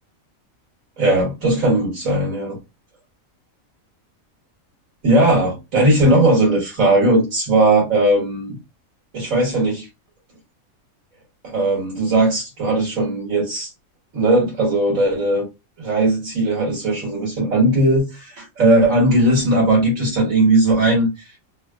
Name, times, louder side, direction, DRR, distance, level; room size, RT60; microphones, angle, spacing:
voice 1, 1.0-2.6 5.0-8.6 9.1-9.9 11.4-13.7 14.1-15.4 15.8-21.1, right 1 dB, 75° right, -4 dB, 2.0 m, -18 dB
3.7 x 2.4 x 2.2 m, 0.25 s
omnidirectional pair, 1.4 m